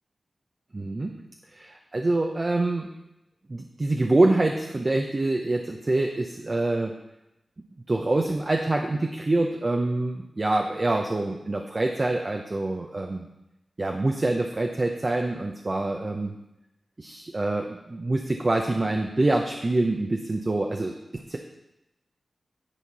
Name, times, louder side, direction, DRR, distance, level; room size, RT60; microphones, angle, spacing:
voice 1, 0.7-1.2 1.5-2.9 3.5-6.9 7.9-13.3 13.8-16.3 17.0-20.9 21.3-21.4, right 2 dB, 40° right, 2 dB, 0.6 m, -25 dB
10.0 x 4.4 x 4.1 m, 0.91 s
cardioid pair, 55°, 0 cm